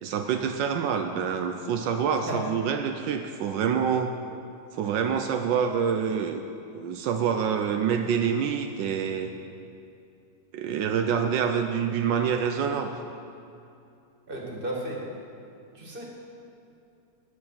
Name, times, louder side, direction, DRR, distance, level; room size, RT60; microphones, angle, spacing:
voice 1, 0.0-4.1 4.7-6.4 6.7-9.3 10.5-12.9, right 7 dB, 80° right, 5 dB, 1.4 m, -26 dB
voice 2, 14.3-15.0 15.7-16.0, right 1 dB, 30° right, -2 dB, 2.3 m, -33 dB
14.0 x 9.3 x 5.9 m, 2.7 s
omnidirectional pair, 2.0 m